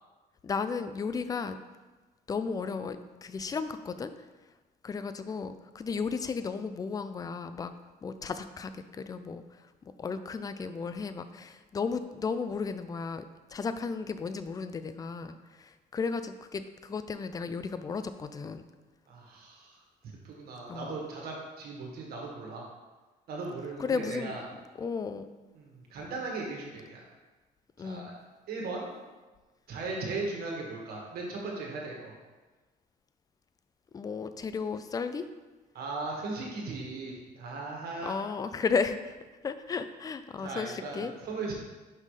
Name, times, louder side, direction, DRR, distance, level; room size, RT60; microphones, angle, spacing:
voice 1, 0.4-1.6 2.3-4.1 4.8-7.7 8.0-13.2 13.5-18.6 20.7-21.0 23.8-24.4 24.8-25.3 27.8-28.1 29.9-30.1 33.9-35.3 38.0-39.2 39.4-41.1, left 5 dB, 20° left, 10 dB, 0.3 m, -34 dB
voice 2, 19.1-19.8 20.2-22.7 23.3-24.4 25.5-27.0 27.8-28.1 28.5-28.9 29.7-32.1 35.7-38.1 40.4-41.5, right 3 dB, 65° right, -2 dB, 1.6 m, -37 dB
5.4 x 5.3 x 3.3 m, 1.2 s
cardioid pair, 110°, 17 cm